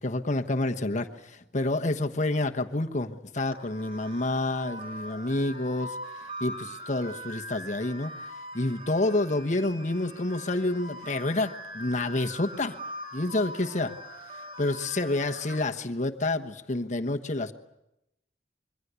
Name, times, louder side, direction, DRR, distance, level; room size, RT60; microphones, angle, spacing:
voice 1, 0.0-6.0 6.4-8.2 8.5-12.8 13.1-13.9 14.6-17.5, left 2 dB, 40° left, 5 dB, 1.2 m, -28 dB
sound 1, 3.5-15.6, equal, 30° right, 5.3 m, -42 dB
26.0 x 23.5 x 8.2 m, 0.88 s
head